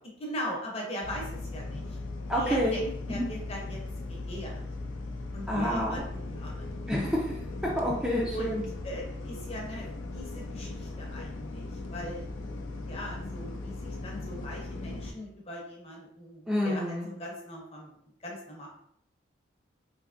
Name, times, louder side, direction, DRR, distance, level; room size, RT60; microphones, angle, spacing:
voice 1, 0.2-2.0 2.3-3.8 4.1-4.6 5.3-7.1 8.3-8.6 8.8-9.9 10.1-12.3 12.8-18.7, equal, 30° left, -1 dB, 0.7 m, -40 dB
sound 1, 1.0-15.1, left 2 dB, 85° left, 0.4 m, -38 dB
voice 2, 2.3-2.7 3.1-3.2 5.5-6.0 6.9-8.6 16.5-17.1, equal, 5° right, -5 dB, 0.3 m, -28 dB
3.3 x 2.7 x 2.5 m, 0.70 s
head